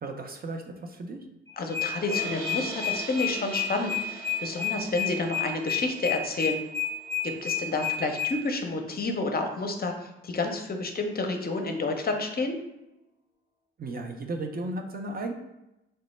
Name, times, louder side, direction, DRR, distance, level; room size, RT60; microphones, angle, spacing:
voice 1, 0.0-1.2 13.8-15.3, right 2 dB, 30° right, 4 dB, 0.5 m, -35 dB
sound 1, 1.5-8.3, left 10 dB, 50° right, 1.1 m, -29 dB
voice 2, 1.6-6.6 7.2-9.9 10.2-12.6, left 3 dB, 30° left, 4 dB, 0.6 m, -30 dB
sound 2, 2.1-8.2, right 1 dB, 90° right, 0.9 m, -42 dB
3.2 x 2.0 x 3.1 m, 0.91 s
hypercardioid pair, 45°, 31 cm